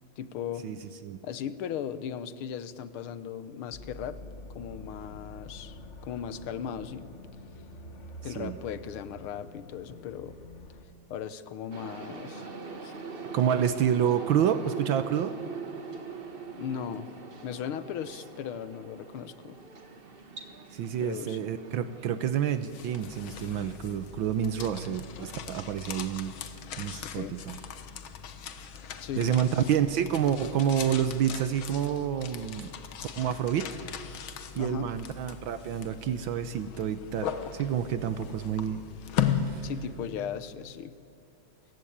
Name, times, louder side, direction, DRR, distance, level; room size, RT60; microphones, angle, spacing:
voice 1, 0.2-0.7 1.2-4.2 4.5-7.1 8.2-10.4 11.1-12.5 12.8-12.9 16.5-17.1 17.4-19.6 21.0-21.4 27.0-27.4 29.0-29.4 34.5-34.9 39.6-40.9, left 8 dB, 90° left, 14 dB, 1.8 m, -37 dB
sound 1, 3.7-10.8, left 1 dB, 35° left, 1.7 m, -46 dB
sound 2, 11.7-26.3, right 4 dB, 30° right, 1.4 m, -44 dB
voice 2, 13.3-15.4 20.7-26.3 26.8-27.6 29.2-32.7 33.2-33.7 34.6-38.8 39.3-39.7, right 9 dB, 75° right, 11 dB, 1.5 m, -28 dB
sound 3, 22.4-40.4, left 8 dB, 75° left, 2.0 m, -38 dB
28.5 x 16.0 x 8.7 m, 2.5 s
omnidirectional pair, 2.3 m